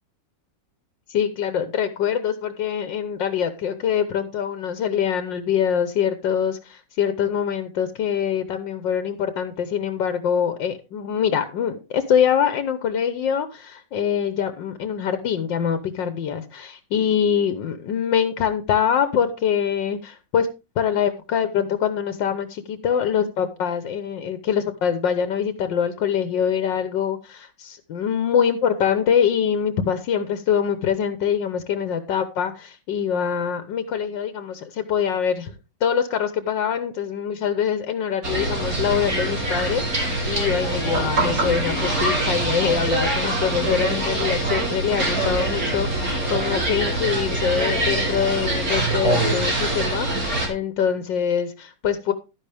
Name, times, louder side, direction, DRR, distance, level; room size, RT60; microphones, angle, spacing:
voice 1, 1.1-20.5 20.8-35.5 35.8-52.1, left 8 dB, 75° left, 11 dB, 1.6 m, -24 dB
sound 1, 38.2-50.5, right 2 dB, 50° right, 3.6 m, -24 dB
12.0 x 10.0 x 3.4 m, 0.28 s
omnidirectional pair, 2.0 m